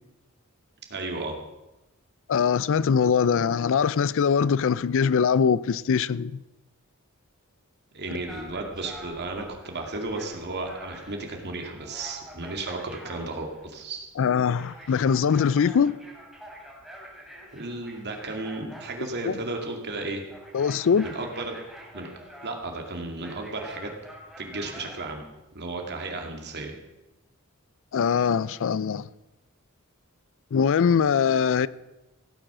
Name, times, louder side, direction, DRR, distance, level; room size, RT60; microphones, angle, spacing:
voice 1, 0.9-1.4 7.9-14.1 17.5-20.2 21.0-21.6 21.9-22.1 22.4-23.9 24.4-25.2 25.5-26.7, right 2 dB, 50° right, 2.3 m, -34 dB
voice 2, 2.3-6.3 14.2-16.0 19.3-19.4 20.5-21.1 27.9-29.1 30.5-31.7, left 6 dB, 65° left, 0.4 m, -22 dB
sound 1, 8.0-25.3, equal, ahead, 3.6 m, -46 dB
16.0 x 8.9 x 6.1 m
head